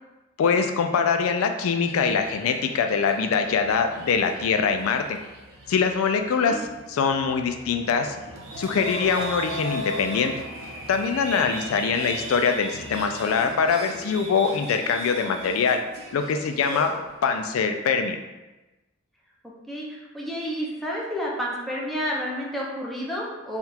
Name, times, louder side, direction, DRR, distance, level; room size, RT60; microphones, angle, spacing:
voice 1, 0.4-5.2 5.7-8.2 8.6-10.3 10.9-15.8 16.1-16.9 17.2-18.2, left 5 dB, 85° left, 6 dB, 0.4 m, -23 dB
sound 1, 1.8-17.4, right 1 dB, 90° right, 0.8 m, -38 dB
voice 2, 19.7-23.6, equal, ahead, -4 dB, 0.7 m, -30 dB
3.5 x 2.3 x 4.3 m, 1.1 s
head